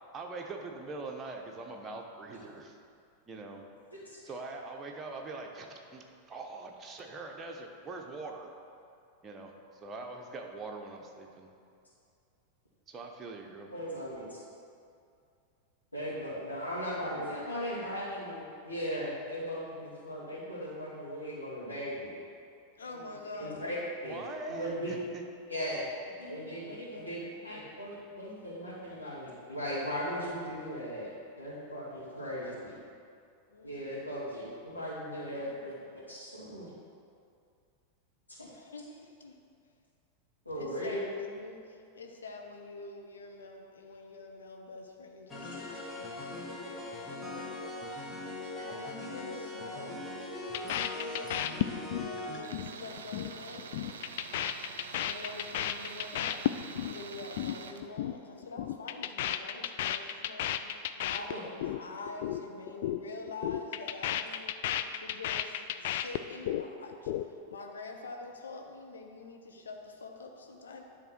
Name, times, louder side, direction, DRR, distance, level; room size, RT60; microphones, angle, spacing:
voice 1, 0.1-2.8 3.3-3.6 4.2-8.5 9.2-9.5 9.8-11.5 12.9-13.7 24.1-25.2, right 3 dB, 20° right, 1 dB, 0.9 m, -42 dB
voice 2, 13.7-14.4 15.9-22.1 22.9-23.0 23.4-23.8 24.0-24.2 24.6-24.9 25.5-31.1 31.4-32.8 33.6-35.7 36.0-36.7 40.5-41.0 61.3-61.4, equal, 85° left, -11 dB, 1.9 m, -38 dB
voice 3, 22.8-23.8 33.5-34.0 35.3-35.8 38.4-39.4 40.6-47.5 48.6-49.9 50.2-50.4 51.0-51.7 52.2-54.1 55.0-70.8, left 3 dB, 70° left, 2 dB, 0.8 m, -46 dB
sound 1, 45.3-52.4, left 2 dB, 20° left, 1.1 m, -40 dB
sound 2, 50.5-52.1 52.4-52.7 53.0-53.3 53.6-57.0 57.2-57.5 57.8-58.2 58.4-61.8 62.1-62.4 62.7-63.0 63.3-66.6 66.9-67.6, left 12 dB, 55° left, 0.3 m, -33 dB
Tools, 52.4-57.8, right 6 dB, 65° right, 0.5 m, -46 dB
10.5 x 3.6 x 6.0 m, 2.4 s
figure-of-eight pair, 90°, 0 cm